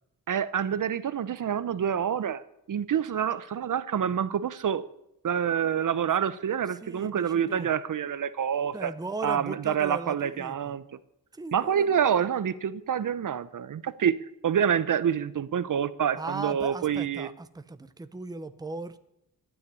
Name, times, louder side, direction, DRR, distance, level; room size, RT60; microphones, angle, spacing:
voice 1, 0.3-2.4 2.7-4.9 5.2-8.9 9.2-10.8 11.5-14.2 14.4-17.3, right 8 dB, 60° right, 15 dB, 0.7 m, -27 dB
voice 2, 6.8-7.7 8.7-10.7 11.3-12.0 16.2-19.0, right 3 dB, 10° right, 10 dB, 0.7 m, -38 dB
13.0 x 9.5 x 9.5 m, 0.81 s
wide cardioid pair, 150°, 36 cm